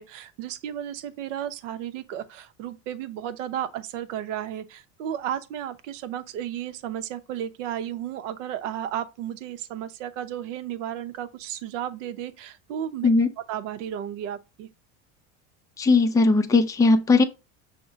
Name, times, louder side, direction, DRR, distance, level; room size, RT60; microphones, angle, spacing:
voice 1, 0.0-13.1 13.5-14.7, right 10 dB, 80° right, 0.7 m, -33 dB
voice 2, 15.8-17.2, left 3 dB, 10° left, 0.4 m, -18 dB
6.0 x 2.1 x 3.8 m
supercardioid pair, 100°, 37 cm